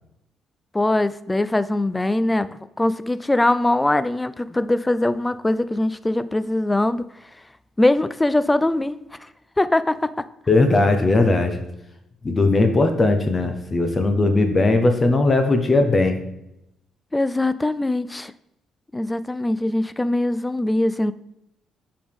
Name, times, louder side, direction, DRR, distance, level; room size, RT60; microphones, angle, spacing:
voice 1, 0.7-7.1 7.8-9.3 9.6-10.1 17.1-18.3 18.9-21.1, left 1 dB, 15° left, 15 dB, 0.3 m, -22 dB
voice 2, 10.5-11.6 12.2-16.2, left 2 dB, 30° left, 7 dB, 0.8 m, -18 dB
7.1 x 4.7 x 3.5 m, 0.83 s
cardioid pair, 90°, 0 cm